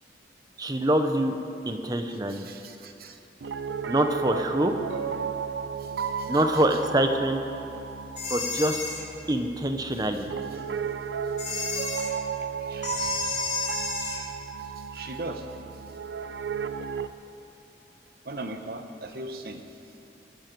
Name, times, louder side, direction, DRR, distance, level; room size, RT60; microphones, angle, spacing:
voice 1, 0.6-1.3 1.7-2.5 3.9-4.7 6.3-7.4 8.3-8.8 9.3-10.2, right 1 dB, 20° right, 6 dB, 0.8 m, -25 dB
voice 2, 2.3-3.2 5.8-6.8 9.9-10.6 12.6-13.2 14.6-15.5 18.2-19.6, right 2 dB, 55° right, 6 dB, 1.0 m, -40 dB
Piano, 3.4-17.1, right 6 dB, 80° right, 0.5 m, -34 dB
sound 1, 8.2-9.0 11.4-12.1 12.8-14.2, left 4 dB, 40° left, 2.4 m, -31 dB
22.0 x 10.0 x 4.7 m, 2.7 s
head